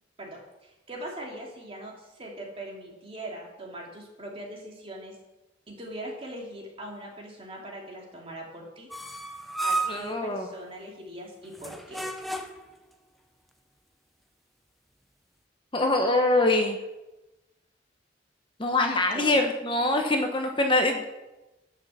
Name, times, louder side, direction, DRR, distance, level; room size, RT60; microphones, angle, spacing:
voice 1, 0.2-5.1 5.7-8.9 9.6-12.0 19.1-19.3, right 1 dB, 30° right, -1 dB, 2.7 m, -41 dB
sound 1, 8.9-10.1 11.5-12.7, right 2 dB, ahead, 0.8 m, -32 dB
voice 2, 9.9-10.5 15.7-16.8 18.6-21.1, left 2 dB, 30° left, 3 dB, 1.0 m, -24 dB
11.0 x 6.7 x 7.4 m, 1.0 s
head